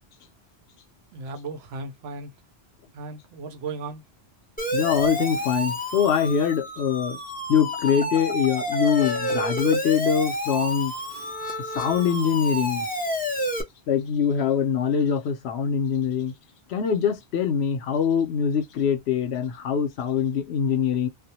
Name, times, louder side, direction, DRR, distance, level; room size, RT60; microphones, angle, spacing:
voice 1, 1.1-2.3 2.9-4.0, right 3 dB, 80° right, 0.8 m, -36 dB
Siren, 4.6-13.6, left 1 dB, 15° left, 0.3 m, -29 dB
voice 2, 4.7-7.2 7.5-10.9 11.7-12.9 13.9-16.3 16.7-21.1, left 7 dB, 80° left, 0.9 m, -23 dB
2.3 x 2.1 x 2.8 m
omnidirectional pair, 1.1 m